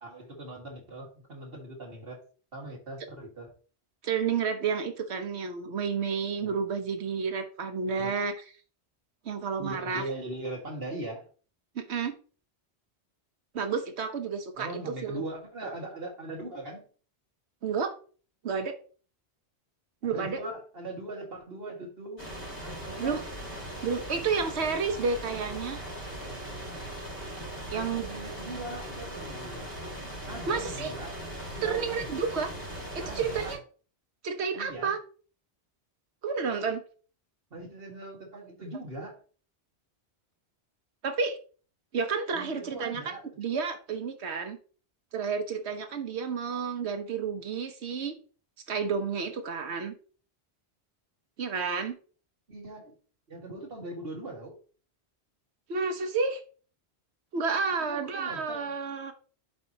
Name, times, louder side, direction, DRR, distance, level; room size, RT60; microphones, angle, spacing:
voice 1, 0.0-2.2 2.5-3.5 6.4-6.6 8.0-8.2 9.6-11.3 14.5-16.9 20.1-23.2 27.7-29.7 30.3-31.1 31.5-32.2 33.0-33.5 34.5-34.9 37.5-39.1 42.3-43.2 52.5-52.9 53.3-54.6 57.8-58.6, right 1 dB, 60° right, 0 dB, 2.0 m, -40 dB
voice 2, 4.0-8.4 9.2-10.1 11.7-12.1 13.5-15.2 17.6-17.9 18.4-18.7 20.0-20.4 23.0-23.2 23.8-25.8 27.7-28.1 30.5-30.9 31.6-32.5 32.9-33.6 34.2-35.0 36.2-36.8 41.0-41.4 41.9-44.6 45.1-48.2 48.7-49.9 51.4-51.9 55.7-56.4 57.3-59.1, right 5 dB, 75° right, 8 dB, 1.1 m, -30 dB
sound 1, 22.2-33.6, right 1 dB, 80° left, 4.0 m, -39 dB
11.0 x 4.4 x 2.8 m, 0.40 s
omnidirectional pair, 1.1 m